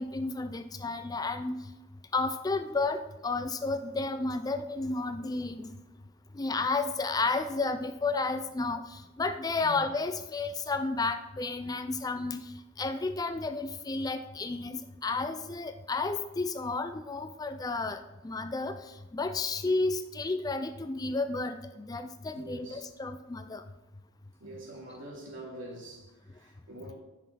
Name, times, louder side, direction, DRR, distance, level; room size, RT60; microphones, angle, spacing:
voice 1, 0.0-1.6 2.1-5.7 6.3-12.4 12.8-18.8 19.1-23.6, left 3 dB, 20° left, 9 dB, 0.4 m, -32 dB
voice 2, 22.3-22.8 24.4-26.9, right 1 dB, 70° right, -1 dB, 2.7 m, -45 dB
14.0 x 6.1 x 4.1 m, 1.0 s
head